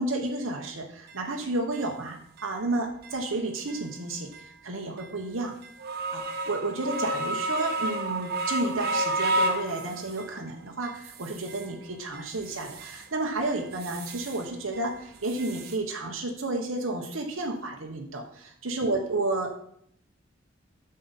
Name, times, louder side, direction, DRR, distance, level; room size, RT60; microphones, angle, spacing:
voice 1, 0.0-5.5 6.1-19.6, right 2 dB, 85° right, 1 dB, 1.0 m, -31 dB
sound 1, 1.1-1.2 1.7-1.8 2.4-2.5 3.0-3.2 3.7-3.9 4.3-4.5 5.0-5.1 5.6-10.4 10.8-11.7 12.1-13.1 13.4-14.5 14.7-15.8, right 1 dB, 50° right, 0.9 m, -32 dB
7.6 x 6.6 x 4.1 m, 0.67 s
head